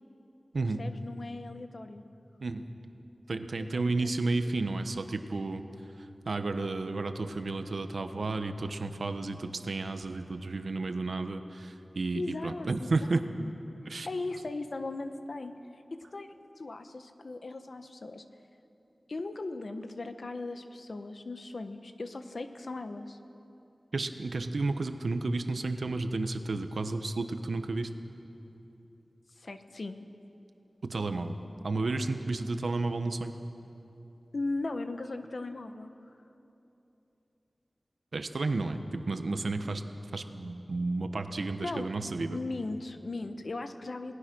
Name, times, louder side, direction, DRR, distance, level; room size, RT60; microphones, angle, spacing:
voice 1, 0.8-2.0 3.6-4.1 12.2-13.0 13.4-13.5 14.1-15.5 15.9-18.2 19.1-23.2 29.4-30.0 34.3-35.9 41.6-41.9 42.3-44.1, left 2 dB, 60° left, 8 dB, 1.2 m, -38 dB
voice 2, 3.3-5.6 6.2-13.2 13.9-14.1 23.9-27.9 30.8-31.4 31.6-33.3 38.1-39.8 40.1-42.4, right 3 dB, 75° right, 8 dB, 1.2 m, -32 dB
28.0 x 19.0 x 6.3 m, 3.0 s
wide cardioid pair, 85°, 0 cm